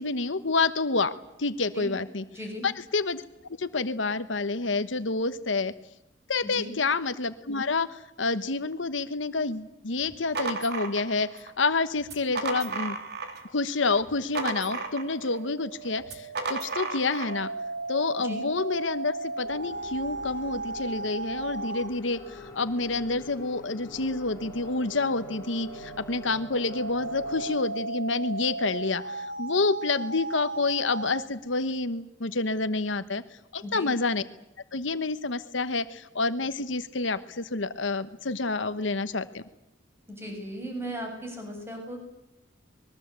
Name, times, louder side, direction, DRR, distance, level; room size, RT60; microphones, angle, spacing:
voice 1, 0.0-2.2 2.6-3.2 3.6-5.7 6.3-13.0 13.5-17.5 17.9-33.2 33.5-34.2 34.7-39.4, left 3 dB, 75° left, 11 dB, 1.2 m, -28 dB
voice 2, 2.3-2.7 6.4-6.7 18.2-18.4 33.6-33.9 40.1-42.0, equal, 15° right, 2 dB, 7.1 m, -37 dB
sound 1, 10.0-11.5 12.0-13.5 13.8-15.4 16.0-17.4, right 3 dB, 60° right, 3.5 m, -33 dB
sound 2, 14.6-22.0 24.0-31.3, right 2 dB, 80° right, 3.1 m, -36 dB
sound 3, 19.4-27.6, left 2 dB, 15° left, 6.1 m, -46 dB
24.5 x 22.0 x 8.2 m, 0.84 s
head